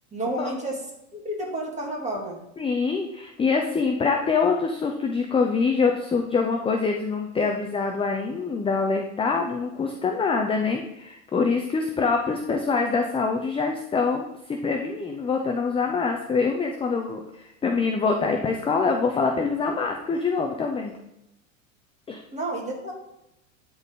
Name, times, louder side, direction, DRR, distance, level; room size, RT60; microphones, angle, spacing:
voice 1, 0.1-0.8 1.1-2.4 22.3-22.9, right 1 dB, 15° right, -1 dB, 2.4 m, -30 dB
voice 2, 2.6-21.0 22.1-22.2, left 4 dB, 15° left, 3 dB, 0.6 m, -25 dB
12.0 x 4.2 x 3.7 m, 0.87 s
supercardioid pair, 115°, 42 cm